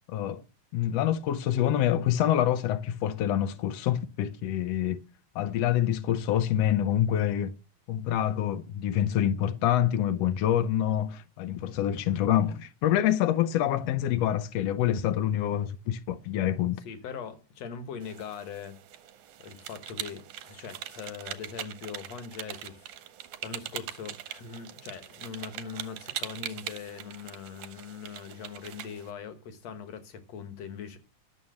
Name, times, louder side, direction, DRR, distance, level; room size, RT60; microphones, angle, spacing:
voice 1, 0.1-0.4 0.7-5.0 5.3-7.5 7.9-16.8, left 11 dB, 80° left, 1.5 m, -26 dB
voice 2, 16.8-18.8 19.4-22.9 23.4-31.0, left 6 dB, 60° left, 2.2 m, -41 dB
sound 1, 18.0-29.1, right 12 dB, 80° right, 2.1 m, -42 dB
11.0 x 7.0 x 6.3 m
omnidirectional pair, 3.7 m